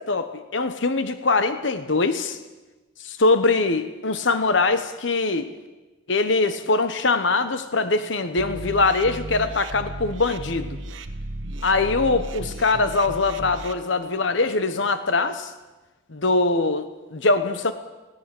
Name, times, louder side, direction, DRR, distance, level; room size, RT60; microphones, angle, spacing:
voice 1, 0.0-2.4 3.0-5.5 6.1-10.8 11.6-15.5 16.1-17.7, left 3 dB, 70° left, 10 dB, 1.1 m, -22 dB
sound 1, 8.4-13.7, right 1 dB, 80° right, 1.3 m, -35 dB
20.0 x 17.5 x 7.7 m, 1.2 s
head